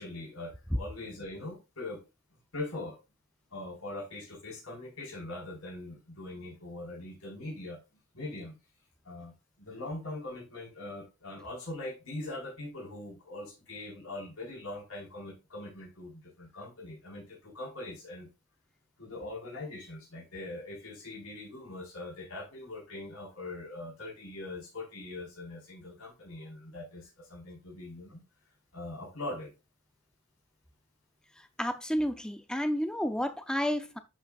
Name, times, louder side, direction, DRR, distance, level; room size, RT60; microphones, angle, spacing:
voice 1, 0.0-2.0 2.5-3.0 3.5-7.8 8.1-8.5 9.0-9.3 9.6-18.3 19.0-28.2 28.7-29.5, left 2 dB, 85° left, 4.3 m, -42 dB
voice 2, 31.6-34.0, equal, 5° left, 0.5 m, -31 dB
10.5 x 6.1 x 2.4 m
head